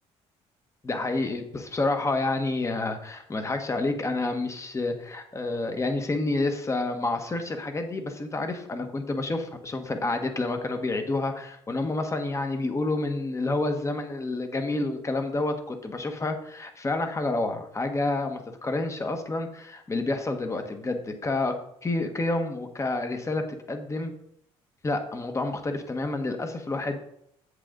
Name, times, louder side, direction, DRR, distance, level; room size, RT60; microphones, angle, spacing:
voice 1, 0.8-21.6 21.8-24.1 24.8-27.0, left 2 dB, 25° left, 6 dB, 1.4 m, -29 dB
8.2 x 7.5 x 3.9 m, 0.73 s
cardioid pair, 90°, 12 cm